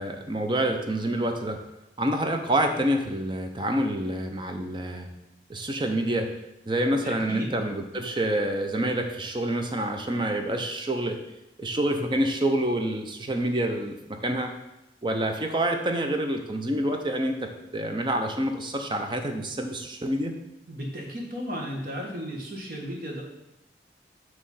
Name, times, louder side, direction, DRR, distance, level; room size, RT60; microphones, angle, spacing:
voice 1, 0.0-1.6 2.0-5.1 5.5-6.3 6.7-11.2 11.6-14.5 15.0-20.3, right 1 dB, 25° right, 5 dB, 0.6 m, -27 dB
voice 2, 7.0-7.5 20.7-23.2, equal, 50° right, 0 dB, 1.4 m, -34 dB
8.5 x 3.1 x 5.5 m, 0.91 s
head